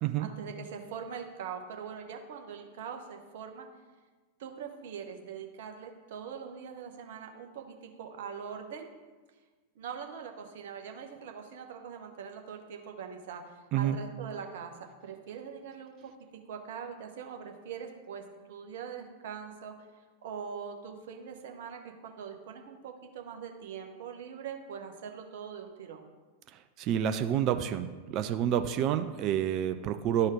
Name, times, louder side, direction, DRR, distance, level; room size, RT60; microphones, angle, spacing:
voice 1, 0.2-3.7 4.4-8.9 9.7-16.1 16.5-19.7 20.2-26.1, right 7 dB, 55° right, 4 dB, 0.9 m, -42 dB
voice 2, 26.8-30.3, right 10 dB, 40° right, 9 dB, 0.4 m, -28 dB
12.0 x 4.3 x 3.6 m, 1.3 s
figure-of-eight pair, 90°, 0 cm